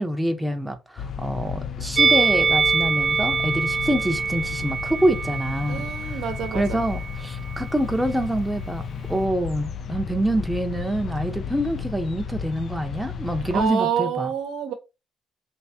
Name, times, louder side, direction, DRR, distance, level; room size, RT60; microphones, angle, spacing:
voice 1, 0.0-6.2 6.5-14.3, right 1 dB, 5° right, 0.7 m, -26 dB
river Weser at Hamelin, 1.0-13.7, left 7 dB, 60° left, 0.4 m, -33 dB
Musical instrument, 2.0-7.2 7.5-7.7, right 5 dB, 35° right, 0.3 m, -24 dB
voice 2, 5.7-6.8 13.5-14.7, right 7 dB, 90° right, 0.8 m, -27 dB
3.4 x 3.2 x 2.8 m
cardioid pair, 90°, 0 cm